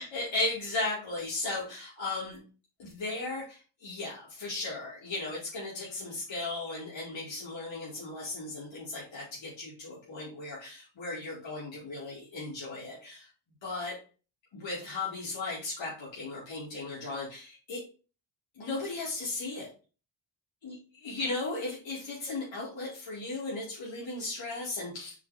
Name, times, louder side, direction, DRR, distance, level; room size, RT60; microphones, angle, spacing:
voice 1, 0.0-2.4 2.8-13.3 13.6-14.0 14.5-17.8 18.5-19.7 20.6-25.2, left 2 dB, 65° left, -6 dB, 2.5 m, -36 dB
5.7 x 3.9 x 4.9 m, 0.35 s
wide cardioid pair, 160°, 48 cm